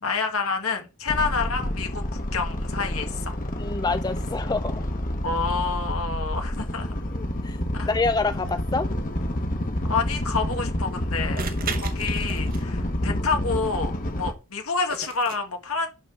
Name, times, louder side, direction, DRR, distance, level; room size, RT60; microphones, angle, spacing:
voice 1, 0.0-3.4 5.2-6.9 7.7-7.9 9.9-13.9 14.2-15.9, left 4 dB, 80° left, 1.8 m, -28 dB
sound 1, 1.1-14.3, left 1 dB, 40° left, 1.2 m, -28 dB
voice 2, 3.6-4.8 7.1-7.6 7.9-8.9, left 3 dB, 20° left, 0.4 m, -27 dB
sound 2, 10.2-10.3 11.4-12.9 14.9-15.4, right 6 dB, 40° right, 1.0 m, -35 dB
11.0 x 4.0 x 4.6 m
head